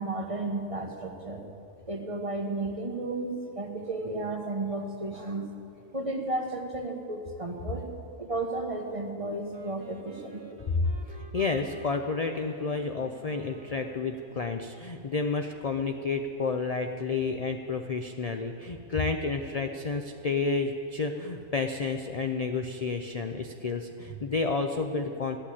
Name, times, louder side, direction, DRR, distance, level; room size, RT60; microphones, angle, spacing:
voice 1, 0.0-1.4 1.9-5.5 5.9-7.9 8.2-10.6, right 2 dB, 25° right, 3 dB, 1.1 m, -33 dB
Wind instrument woodwind instrument, 9.5-14.5, right 3 dB, 50° right, 1.5 m, -49 dB
voice 2, 11.1-25.4, left 4 dB, 45° left, 5 dB, 0.5 m, -30 dB
14.0 x 8.7 x 8.5 m, 2.6 s
omnidirectional pair, 1.4 m